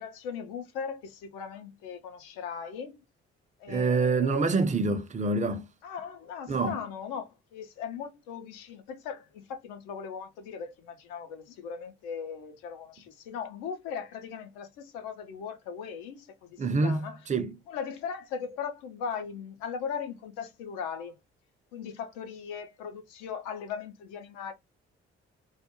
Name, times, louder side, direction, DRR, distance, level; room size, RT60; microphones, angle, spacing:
voice 1, 0.0-3.0 3.6-4.6 5.8-17.2 17.7-21.1 21.7-24.5, left 6 dB, 70° left, 0.6 m, -38 dB
voice 2, 3.7-5.6 6.5-6.8 16.6-17.6, right 4 dB, 25° right, 0.5 m, -26 dB
2.4 x 2.1 x 2.8 m
figure-of-eight pair, 40°, 32 cm